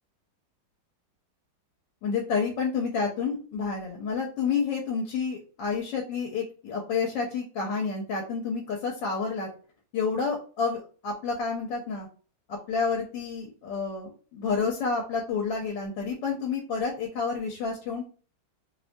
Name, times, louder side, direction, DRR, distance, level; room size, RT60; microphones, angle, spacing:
voice 1, 2.0-9.5 9.9-12.1 12.5-18.1, left 5 dB, 85° left, 0 dB, 1.3 m, -29 dB
3.1 x 2.2 x 2.5 m, 0.40 s
omnidirectional pair, 1.9 m